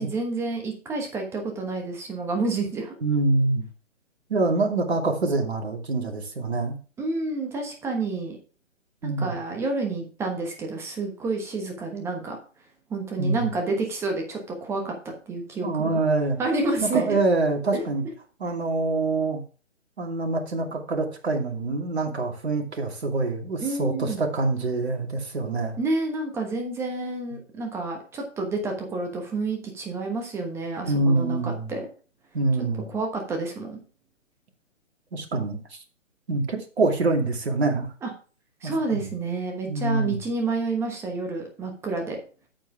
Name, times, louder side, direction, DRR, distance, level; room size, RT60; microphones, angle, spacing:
voice 1, 0.0-2.9 7.0-8.4 9.0-12.4 12.9-16.0 16.4-17.2 17.7-17.8 23.6-24.2 25.8-31.9 32.9-33.8 38.0-38.1 38.6-42.2, right 3 dB, 5° right, 3 dB, 1.2 m, -29 dB
voice 2, 3.0-3.6 4.3-6.8 9.0-9.3 13.2-13.5 15.6-16.4 16.8-18.1 18.4-19.4 20.0-25.8 30.8-31.7 32.3-32.9 35.1-35.8 36.3-37.9 38.6-39.0 39.7-40.2, right 3 dB, 55° right, 2 dB, 2.5 m, -25 dB
8.7 x 7.6 x 3.5 m, 0.37 s
figure-of-eight pair, 140°, 38 cm